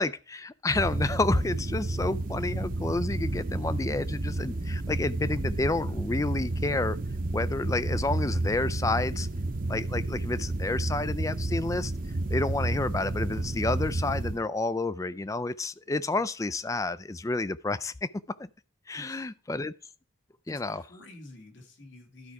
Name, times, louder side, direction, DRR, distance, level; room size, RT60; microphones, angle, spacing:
voice 1, 0.0-7.0 7.3-9.3 9.7-11.9 12.3-17.9 18.4-18.5 18.9-19.7 20.5-20.8, left 2 dB, 15° left, 0.3 m, -30 dB
sound 1, 0.7-14.4, right 2 dB, 45° right, 0.7 m, -31 dB
voice 2, 18.9-19.2 20.5-22.3, left 1 dB, 65° left, 2.5 m, -49 dB
12.5 x 4.8 x 4.6 m
head